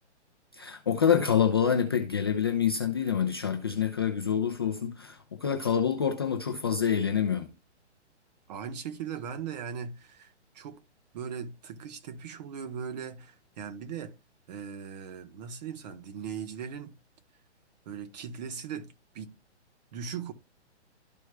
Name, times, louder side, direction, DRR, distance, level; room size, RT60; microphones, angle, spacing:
voice 1, 0.5-7.5, left 7 dB, 20° left, 0.4 m, -27 dB
voice 2, 8.5-10.8 11.1-14.1 14.5-17.0 17.9-19.3 19.9-20.3, right 7 dB, 35° right, 1.1 m, -39 dB
13.0 x 4.6 x 2.2 m
hypercardioid pair, 150°, 35 cm